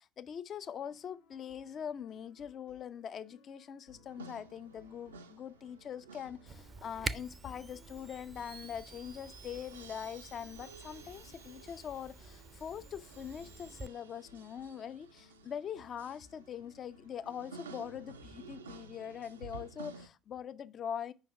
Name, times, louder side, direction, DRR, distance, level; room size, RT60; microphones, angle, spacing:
voice 1, 0.0-21.1, left 8 dB, 40° left, 0.4 m, -43 dB
sound 1, 0.6-19.2, left 3 dB, 75° left, 1.1 m, -64 dB
sound 2, 4.1-20.1, right 4 dB, 80° right, 0.4 m, -54 dB
Camera, 6.5-13.9, right 3 dB, 25° right, 0.4 m, -46 dB
5.1 x 3.9 x 5.7 m
figure-of-eight pair, 60°, 0 cm